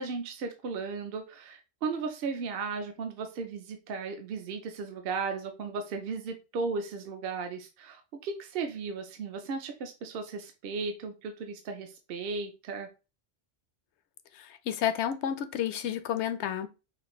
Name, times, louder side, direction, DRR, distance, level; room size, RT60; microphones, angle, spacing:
voice 1, 0.0-12.9, right 4 dB, 65° right, 0.8 m, -36 dB
voice 2, 14.3-16.7, left 9 dB, 90° left, 0.9 m, -31 dB
5.6 x 2.5 x 3.0 m
omnidirectional pair, 1.1 m